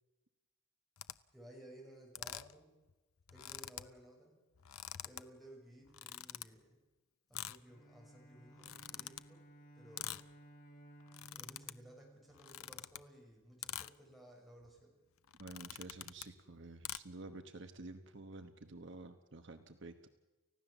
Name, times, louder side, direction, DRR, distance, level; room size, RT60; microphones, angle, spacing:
sound 1, 1.0-1.1 2.1-2.6 2.9-3.0 3.2-3.9 4.5-5.2 5.9-6.4 7.3-7.6 8.5-9.2 10.0-10.3 11.0-11.7 12.3-13.0 13.6-13.9 14.6-14.8 15.3-16.3 16.8-17.0, left 12 dB, 75° left, 0.7 m, -46 dB
voice 1, 1.3-2.8 3.3-4.4 5.0-6.8 7.3-9.4 9.7-10.3 11.3-15.0, right 1 dB, ahead, -2 dB, 6.4 m, -58 dB
Bowed string instrument, 7.6-13.0, right 1 dB, 40° left, 3.3 m, -60 dB
voice 2, 15.4-20.1, right 2 dB, 55° right, 8 dB, 1.1 m, -50 dB
30.0 x 15.5 x 7.2 m, 1.1 s
head